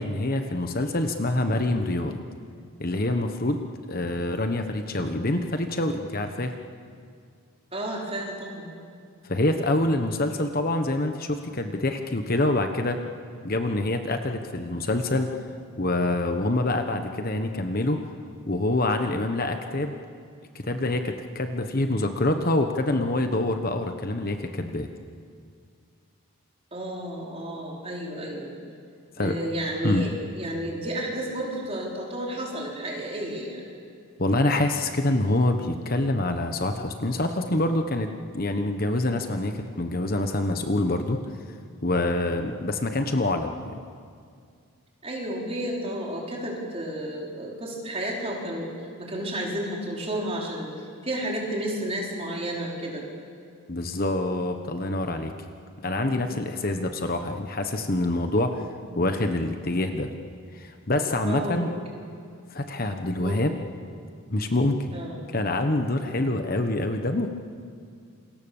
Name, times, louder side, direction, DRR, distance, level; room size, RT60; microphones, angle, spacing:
voice 1, 0.0-2.2 2.8-3.6 3.9-6.6 9.2-13.0 13.4-15.4 15.8-18.1 18.5-19.9 20.5-24.9 29.2-29.4 29.8-30.1 34.2-41.2 41.8-43.8 53.7-55.3 55.8-58.6 58.9-60.1 60.5-61.7 62.5-63.5 64.3-64.9 65.3-67.3, left 2 dB, 40° left, 6 dB, 1.2 m, -26 dB
voice 2, 7.7-8.7 26.7-28.5 29.2-33.6 45.0-48.7 49.0-50.7 51.0-53.1 56.0-56.3 61.3-61.8 63.2-63.4 64.9-65.3, right 1 dB, 25° right, -2 dB, 4.9 m, -32 dB
28.0 x 25.0 x 7.2 m, 2.2 s
head